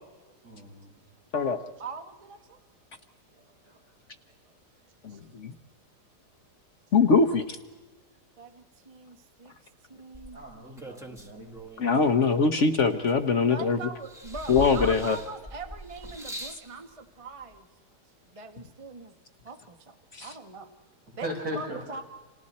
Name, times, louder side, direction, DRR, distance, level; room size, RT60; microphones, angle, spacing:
voice 1, 0.4-0.9 10.3-11.5 21.2-21.8, equal, 75° right, -3 dB, 7.9 m, -37 dB
voice 2, 1.8-2.6 3.3-3.4 3.7-3.8 5.1-5.2 8.4-9.5 9.9-10.4 13.4-17.7 18.2-19.1 19.4-20.7 21.2-22.0, right 3 dB, 20° right, 6 dB, 1.1 m, -42 dB
voice 3, 5.0-5.5 6.9-7.6 11.8-13.8 14.5-15.2 20.1-20.3, left 4 dB, 50° left, 5 dB, 1.3 m, -22 dB
sound 1, 10.1-12.0 12.5-13.6 14.0-16.7 17.6-17.7, equal, ahead, 1.4 m, -41 dB
30.0 x 27.0 x 4.3 m, 1.3 s
omnidirectional pair, 1.8 m